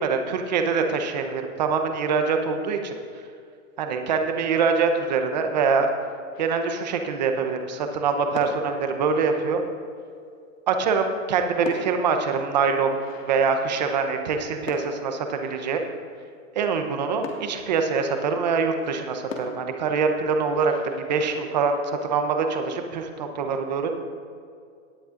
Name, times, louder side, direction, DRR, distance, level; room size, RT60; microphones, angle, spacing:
voice 1, 0.0-2.9 3.8-5.9 6.4-9.6 10.7-13.0 13.3-15.8 16.5-24.0, right 5 dB, 35° right, 6 dB, 0.8 m, -24 dB
sound 1, 6.3-7.1 8.2-10.1 11.1-14.2 14.7-16.2 17.2-18.6 19.3-21.8, left 3 dB, 70° left, 1.9 m, -42 dB
18.0 x 10.0 x 2.5 m, 2.3 s
hypercardioid pair, 170°, 40 cm